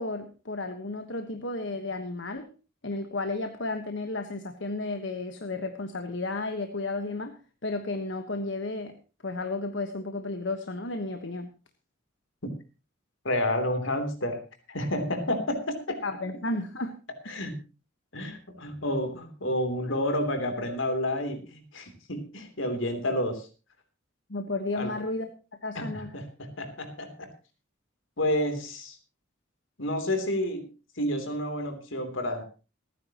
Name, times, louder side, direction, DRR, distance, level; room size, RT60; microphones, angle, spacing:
voice 1, 0.0-2.5 2.8-9.0 9.2-11.5 16.0-16.9 24.3-25.3 25.6-26.1, left 2 dB, 65° left, 6 dB, 1.3 m, -33 dB
voice 2, 13.2-14.4 14.7-16.0 17.3-17.6 18.1-23.5 24.8-24.9 25.7-27.3 28.2-29.0 29.8-30.7 31.0-32.4, left 1 dB, 80° left, 7 dB, 3.3 m, -30 dB
27.5 x 10.0 x 3.0 m, 0.33 s
head